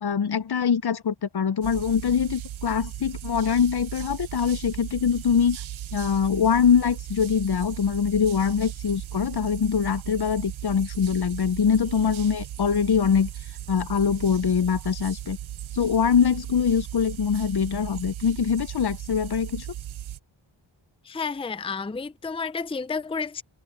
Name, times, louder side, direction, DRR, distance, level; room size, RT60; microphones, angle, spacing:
voice 1, 0.0-5.6 5.9-13.3 13.7-15.4 15.7-19.7, left 7 dB, 50° left, 0.8 m, -23 dB
sound 1, 1.6-20.2, right 12 dB, 70° right, 0.6 m, -37 dB
voice 2, 21.0-23.4, left 5 dB, 10° left, 0.6 m, -31 dB
wide cardioid pair, 85°, 49 cm